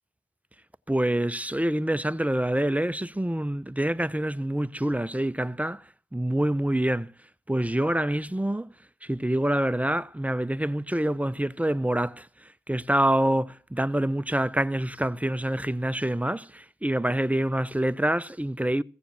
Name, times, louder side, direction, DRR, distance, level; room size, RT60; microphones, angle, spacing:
voice 1, 0.9-5.8 6.1-7.1 7.5-8.7 9.0-12.3 12.7-18.8, right 1 dB, 5° right, 0.6 m, -26 dB
15.5 x 7.1 x 6.5 m
cardioid pair, 40°, 19 cm